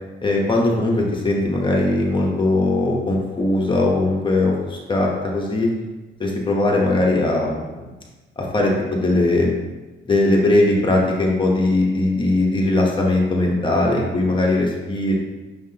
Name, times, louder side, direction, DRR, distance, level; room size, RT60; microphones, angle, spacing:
voice 1, 0.2-5.7 6.2-7.8 8.4-9.5 10.0-15.2, left 2 dB, 25° left, -1 dB, 1.0 m, -19 dB
6.4 x 5.7 x 2.8 m, 1.2 s
cardioid pair, 135°, 21 cm